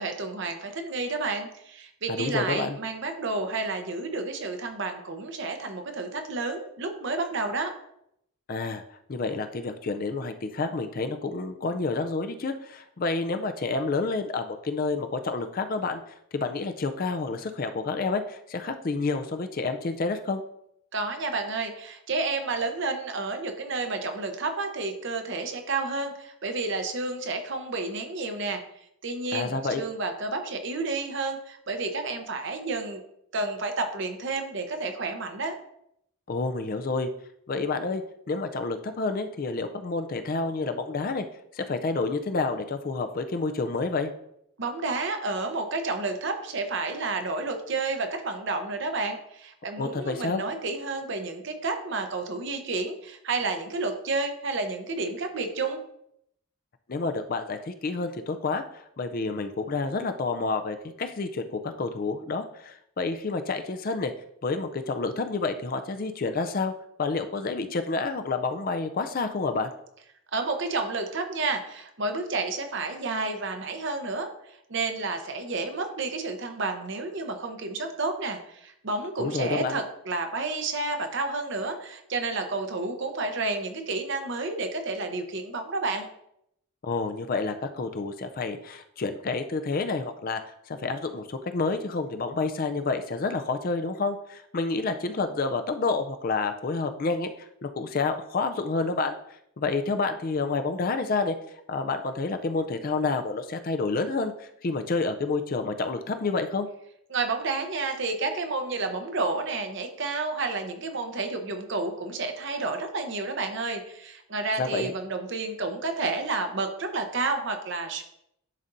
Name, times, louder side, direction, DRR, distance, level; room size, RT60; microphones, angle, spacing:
voice 1, 0.0-7.7 20.9-28.6 29.0-33.0 33.3-35.6 44.6-55.8 70.3-74.3 74.7-86.1 107.1-118.0, right 3 dB, 55° right, 5 dB, 0.8 m, -30 dB
voice 2, 2.1-2.8 8.5-8.8 9.1-16.0 16.3-20.4 29.3-29.8 36.3-37.1 37.5-41.2 41.5-44.1 49.8-50.4 56.9-58.6 59.0-64.1 64.4-66.7 67.0-69.7 79.2-79.8 86.8-90.4 90.7-99.2 99.6-101.4 101.7-106.7 114.6-114.9, left 3 dB, 40° left, 8 dB, 0.4 m, -29 dB
10.5 x 4.1 x 2.6 m, 0.76 s
head